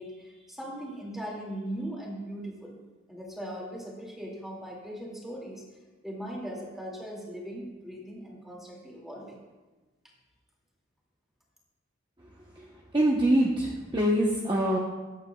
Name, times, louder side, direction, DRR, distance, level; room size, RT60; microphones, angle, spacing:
voice 1, 0.0-2.8 3.1-5.6 6.0-9.4, right 1 dB, ahead, -3 dB, 2.4 m, -39 dB
voice 2, 12.9-14.8, right 1 dB, 25° right, -2 dB, 0.9 m, -24 dB
20.5 x 8.2 x 2.3 m, 1.2 s
head